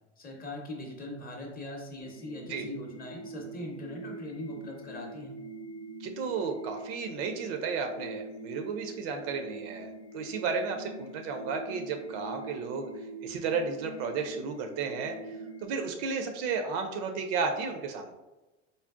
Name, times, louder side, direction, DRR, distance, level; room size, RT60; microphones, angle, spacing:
voice 1, 0.2-5.3, left 1 dB, 25° left, 1 dB, 0.7 m, -41 dB
sound 1, 2.0-15.7, right 2 dB, 60° left, 0.7 m, -44 dB
voice 2, 6.0-12.9 13.2-15.1 15.6-18.1, right 5 dB, 50° right, 5 dB, 0.4 m, -33 dB
3.8 x 2.0 x 2.3 m, 1.1 s
hypercardioid pair, 85°, 38 cm